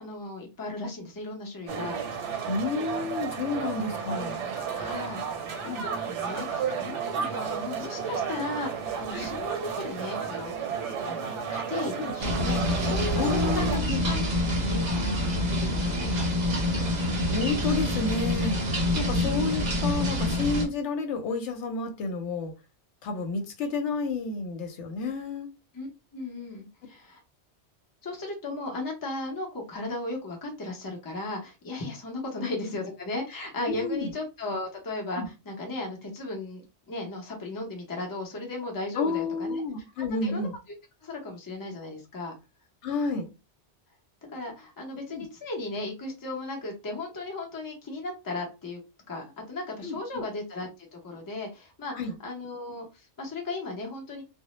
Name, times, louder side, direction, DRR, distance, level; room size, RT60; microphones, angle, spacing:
voice 1, 0.0-2.5 4.7-5.2 5.5-10.5 11.1-11.2 11.5-14.3 14.6-16.3 19.1-19.4 25.7-27.2 28.0-39.6 40.2-40.5 41.0-42.3 44.3-48.8 49.1-52.0 52.2-54.2, left 2 dB, 25° left, 1 dB, 0.5 m, -36 dB
sound 1, 1.7-13.8, right 6 dB, 90° right, 0.9 m, -33 dB
voice 2, 2.5-4.4 5.7-5.9 9.1-9.3 12.0-12.1 13.1-14.0 16.8-16.9 17.3-18.6 18.9-22.5 23.0-25.5 32.4-32.5 33.7-34.1 35.2-35.3 39.0-40.5 42.8-43.3 45.1-45.2 49.8-50.2 51.9-52.1, left 3 dB, 80° left, 5 dB, 0.9 m, -30 dB
sound 2, 12.2-20.7, left 1 dB, 45° right, 0.7 m, -26 dB
2.1 x 2.0 x 2.9 m, 0.27 s
omnidirectional pair, 1.2 m